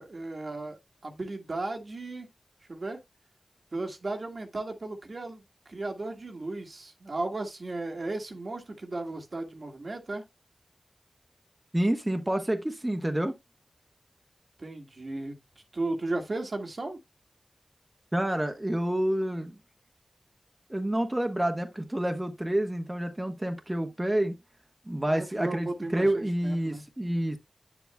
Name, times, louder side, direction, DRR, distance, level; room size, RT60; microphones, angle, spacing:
voice 1, 0.0-2.3 2.7-3.0 3.7-5.4 5.7-10.2 14.6-15.4 15.7-17.0 25.1-26.9, right 2 dB, 60° right, 1.7 m, -35 dB
voice 2, 11.7-13.4 18.1-19.5 20.7-24.3 24.9-27.4, right 1 dB, 20° right, 1.3 m, -28 dB
8.8 x 7.2 x 2.2 m
cardioid pair, 40°, 0 cm